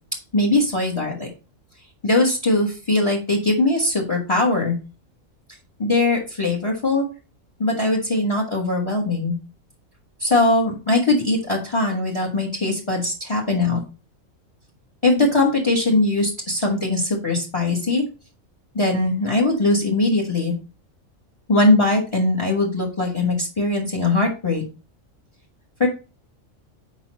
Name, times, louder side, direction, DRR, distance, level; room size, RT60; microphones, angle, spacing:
voice 1, 0.3-1.3 2.0-4.7 5.8-7.1 7.6-9.3 10.2-13.8 15.0-18.0 18.8-20.5 21.5-24.6 25.8-25.9, left 2 dB, 20° left, 1 dB, 1.6 m, -20 dB
7.4 x 5.0 x 5.1 m, 0.33 s
omnidirectional pair, 1.4 m